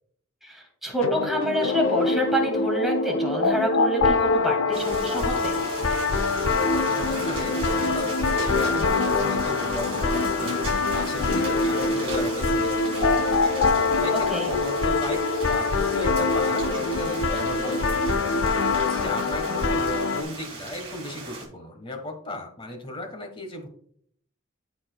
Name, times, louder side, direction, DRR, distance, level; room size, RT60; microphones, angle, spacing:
voice 1, 0.4-5.6 14.1-14.5, right 1 dB, ahead, -1 dB, 2.2 m, -27 dB
sound 1, 1.0-20.2, left 3 dB, 75° left, 0.7 m, -24 dB
sound 2, 4.7-21.4, right 2 dB, 30° right, 2.7 m, -37 dB
voice 2, 6.4-10.6 10.9-12.8 13.9-15.2 15.5-18.1 18.8-23.7, left 1 dB, 25° left, 5 dB, 1.3 m, -36 dB
13.5 x 4.9 x 2.3 m, 0.64 s
head